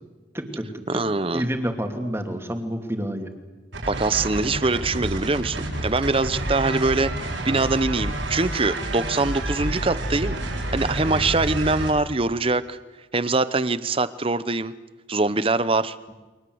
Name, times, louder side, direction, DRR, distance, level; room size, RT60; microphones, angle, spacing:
voice 1, 0.3-1.0 1.3-3.3, equal, 15° right, 4 dB, 2.6 m, -29 dB
voice 2, 0.9-1.4 3.9-5.6 5.8-10.4 10.7-12.8 13.1-14.7 15.1-16.0, right 3 dB, 30° right, 14 dB, 0.9 m, -23 dB
sound 1, 3.7-11.9, right 1 dB, 80° right, 7.1 m, -29 dB
30.0 x 24.0 x 8.0 m, 1.2 s
head